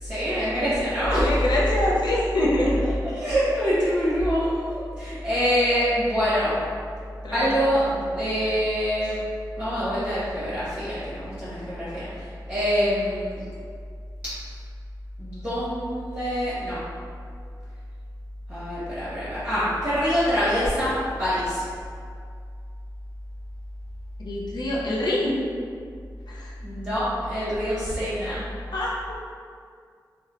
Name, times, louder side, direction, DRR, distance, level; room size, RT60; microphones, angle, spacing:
voice 1, 0.0-1.2 3.1-6.6 7.3-9.2 9.6-13.4 15.2-16.8 18.5-20.9 21.2-21.6 26.6-28.4, equal, 20° right, -13 dB, 0.8 m, -25 dB
voice 2, 1.1-2.8 7.2-7.6 24.2-25.4 26.3-26.5 28.7-29.2, left 1 dB, 75° left, -5 dB, 0.5 m, -25 dB
2.9 x 2.1 x 2.4 m, 2.1 s
wide cardioid pair, 90°, 7 cm